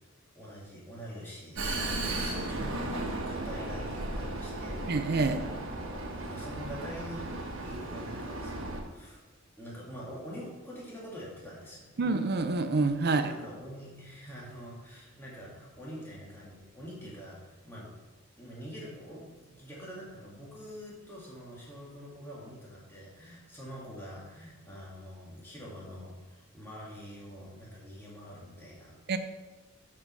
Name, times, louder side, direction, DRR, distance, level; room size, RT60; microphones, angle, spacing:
voice 1, 0.4-4.9 6.2-9.2 9.6-12.1 13.0-17.9 18.4-29.0, equal, 10° left, -6 dB, 2.1 m, -45 dB
Vehicle, 1.5-8.8, right 2 dB, 75° right, 1.2 m, -35 dB
voice 2, 4.9-5.4 12.0-13.3 29.1-29.2, right 3 dB, 50° right, 9 dB, 0.5 m, -27 dB
7.6 x 5.3 x 6.1 m, 1.2 s
head